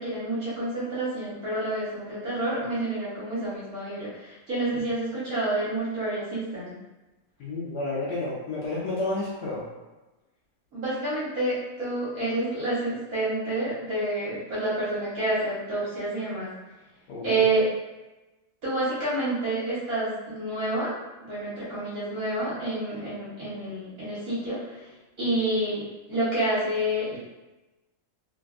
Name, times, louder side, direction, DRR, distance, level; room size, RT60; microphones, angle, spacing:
voice 1, 0.0-6.7 10.7-16.5 17.2-17.7 18.6-20.9 21.2-25.8 26.1-27.2, right 2 dB, 50° right, -10 dB, 1.4 m, -28 dB
voice 2, 7.4-9.6 17.1-17.4, left 2 dB, 70° left, -6 dB, 1.1 m, -31 dB
3.3 x 2.4 x 2.4 m, 1.1 s
omnidirectional pair, 2.1 m